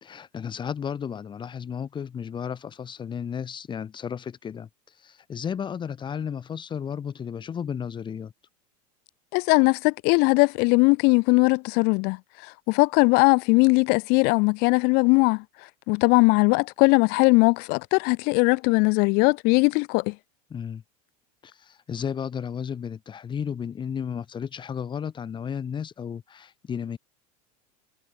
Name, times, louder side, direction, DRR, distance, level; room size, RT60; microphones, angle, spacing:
voice 1, 0.0-4.7 5.0-8.3 20.5-20.8 21.4-27.0, left 7 dB, 25° left, 3.4 m, -33 dB
voice 2, 9.3-12.2 12.7-15.4 15.9-20.1, left 30 dB, 55° left, 2.3 m, -20 dB
supercardioid pair, 125°, 19 cm